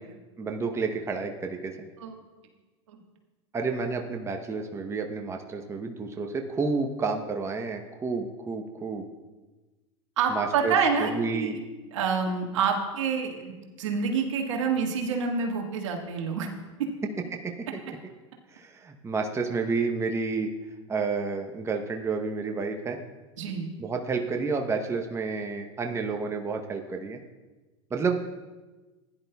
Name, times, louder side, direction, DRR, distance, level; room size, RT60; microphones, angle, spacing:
voice 1, 0.4-1.9 3.5-9.1 10.3-11.6 17.9-18.1 18.5-20.5 20.9-23.0 23.8-27.2 27.9-28.2, right 4 dB, 15° right, 4 dB, 0.8 m, -30 dB
voice 2, 10.2-11.6 11.9-13.5 13.8-16.5 23.4-23.7, right 5 dB, 80° right, 2 dB, 1.6 m, -27 dB
15.5 x 10.5 x 2.3 m, 1.2 s
hypercardioid pair, 105°, 16 cm